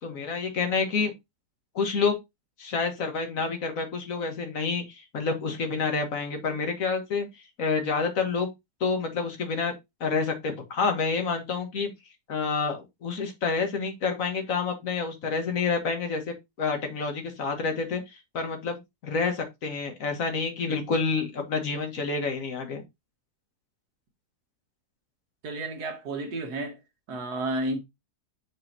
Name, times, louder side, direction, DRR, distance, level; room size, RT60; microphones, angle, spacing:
voice 1, 0.0-1.1 1.8-2.2 2.6-7.3 7.6-8.5 8.8-9.7 10.0-11.9 12.3-22.8, left 4 dB, 60° left, 1.8 m, -28 dB
voice 2, 25.4-26.8 27.1-27.8, right 2 dB, 80° right, 1.9 m, -31 dB
6.6 x 5.4 x 2.8 m
omnidirectional pair, 1.7 m